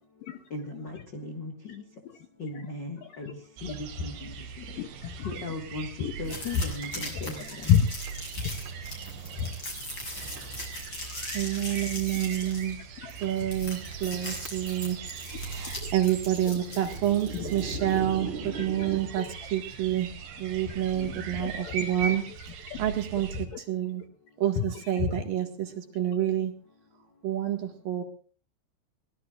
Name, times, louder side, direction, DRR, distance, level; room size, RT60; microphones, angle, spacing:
voice 1, 0.5-1.8 2.4-4.3 5.2-7.7 20.9-21.3, left 2 dB, 50° left, 3 dB, 1.3 m, -38 dB
voice 2, 2.5-3.3 3.7-4.2 4.7-5.3 6.0-6.7 7.1-7.9 8.4-8.5 9.4-9.5 13.0-13.1 13.4-13.5 15.3-15.9 16.5-16.6 17.3-19.5 20.6-23.6 24.0-24.1 24.6-25.1, left 8 dB, 70° left, 7 dB, 2.2 m, -33 dB
sound 1, 3.6-23.5, right 6 dB, 85° right, 4.3 m, -40 dB
sound 2, 6.2-18.0, left 1 dB, 25° left, 7.4 m, -40 dB
Thunder, 6.8-6.9 8.1-8.4 8.7-8.8 9.4-9.5 10.4-10.7 11.0-11.2 12.1-12.2 12.8-12.9 13.2-13.3 13.9-14.9 15.2-19.0, right 5 dB, 30° right, 4.2 m, -41 dB
voice 3, 11.3-12.8 13.2-15.0 15.3-19.2 19.5-20.1 20.4-22.2 22.8-23.3 23.7-24.0 24.4-26.5 27.2-28.0, right 11 dB, 60° right, 4 dB, 3.2 m, -28 dB
23.5 x 19.0 x 2.4 m, 0.39 s
omnidirectional pair, 5.1 m